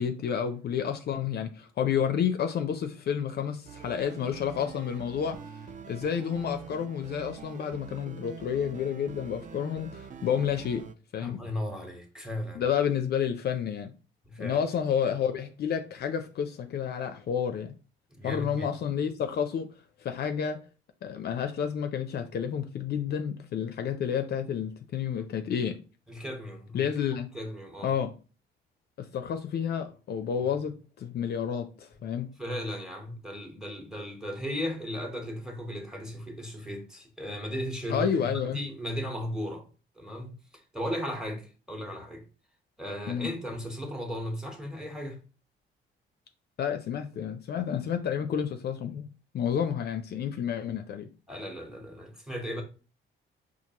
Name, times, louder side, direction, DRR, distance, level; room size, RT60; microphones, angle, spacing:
voice 1, 0.0-5.4 5.9-10.8 11.1-11.4 12.5-13.9 14.4-17.7 18.2-19.7 20.0-20.6 21.0-25.8 26.7-27.3 27.8-28.1 29.0-32.3 37.9-38.6 43.1-43.3 46.6-49.1 49.3-51.1, left 8 dB, 55° left, 0.4 m, -30 dB
sound 1, 3.7-11.0, right 6 dB, 40° right, 0.4 m, -45 dB
voice 2, 11.2-12.6 14.2-14.6 18.1-18.7 26.1-28.0 31.9-32.0 32.4-39.7 39.9-40.4 40.7-42.2 42.8-45.2 51.3-52.6, equal, 5° right, 1.0 m, -36 dB
4.4 x 2.4 x 2.8 m
cardioid pair, 90°, 20 cm